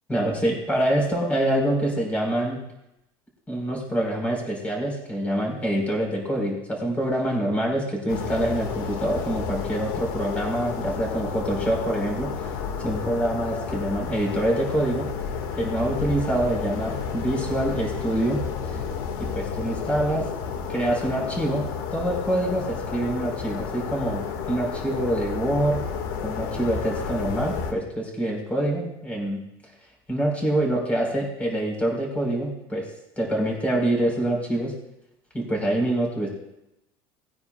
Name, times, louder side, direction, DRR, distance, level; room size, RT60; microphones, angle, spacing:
voice 1, 0.1-2.6 3.5-12.3 12.8-15.1 15.6-18.4 18.7-18.8 19.2-20.2 20.7-21.6 21.9-25.8 26.2-29.4 30.1-32.9 33.2-34.7 35.3-36.3, right 1 dB, 10° left, -1 dB, 4.7 m, -25 dB
sound 1, 8.1-27.7, left 6 dB, 80° left, 2.0 m, -31 dB
20.0 x 9.6 x 2.5 m, 0.85 s
cardioid pair, 160°, 11 cm